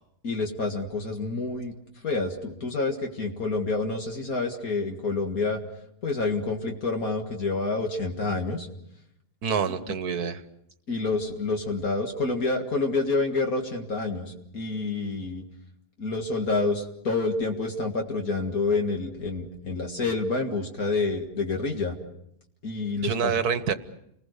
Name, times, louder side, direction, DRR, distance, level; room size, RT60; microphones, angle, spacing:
voice 1, 0.2-1.7 2.0-5.6 6.0-8.7 9.9-10.0 10.9-15.4 16.0-21.9 22.6-23.4, left 3 dB, 60° left, 2 dB, 2.3 m, -28 dB
voice 2, 9.4-10.4 23.0-23.7, right 6 dB, 70° right, 12 dB, 1.6 m, -26 dB
29.5 x 20.5 x 6.6 m, 0.78 s
omnidirectional pair, 1.7 m